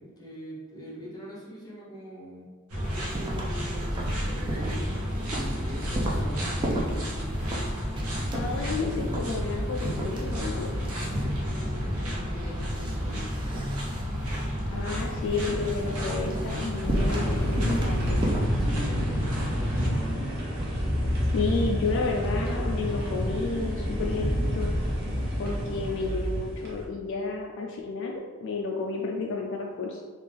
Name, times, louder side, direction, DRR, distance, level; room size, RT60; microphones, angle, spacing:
voice 1, 0.0-2.5 2.9-7.1 10.9-13.3 18.6-20.2, right 1 dB, 20° left, -5 dB, 0.8 m, -41 dB
sound 1, 2.7-19.9, equal, 80° right, 0.7 m, -31 dB
sound 2, 2.8-18.4, right 1 dB, 20° right, 0.4 m, -34 dB
voice 2, 8.3-10.7 14.7-18.2 21.3-24.8 25.4-30.0, left 4 dB, 55° left, 0 dB, 0.3 m, -31 dB
sound 3, 16.9-26.9, equal, 50° right, 0.8 m, -28 dB
3.5 x 2.4 x 3.4 m, 1.5 s
head